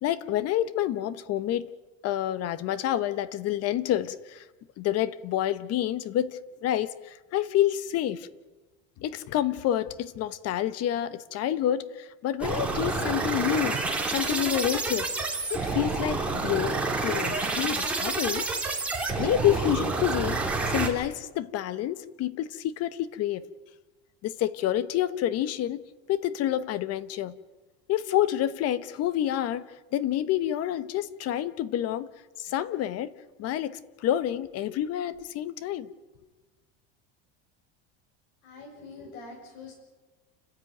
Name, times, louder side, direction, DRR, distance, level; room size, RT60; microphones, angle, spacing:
voice 1, 0.0-1.7 2.0-4.4 4.8-8.3 9.0-13.8 14.1-15.1 15.5-18.4 19.2-23.4 24.2-27.4 27.9-29.7 29.9-32.1 32.4-33.1 33.4-35.9, left 12 dB, 50° left, 1.1 m, -28 dB
sound 1, 12.4-20.9, right 3 dB, 5° right, 3.7 m, -29 dB
voice 2, 38.4-39.7, left 3 dB, 85° left, 6.5 m, -44 dB
29.5 x 10.5 x 9.1 m
supercardioid pair, 135°, 32 cm